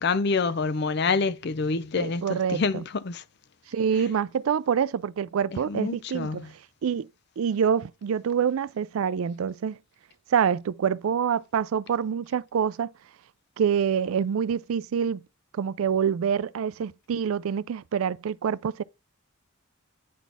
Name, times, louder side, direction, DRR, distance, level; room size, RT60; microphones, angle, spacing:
voice 1, 0.0-3.2 5.7-6.5, left 4 dB, 55° left, 0.5 m, -27 dB
voice 2, 2.0-2.8 3.7-6.5 6.8-7.1 7.4-9.8 10.3-12.9 13.6-15.2 15.5-18.8, right 7 dB, 90° right, 0.4 m, -26 dB
9.4 x 4.1 x 3.5 m
head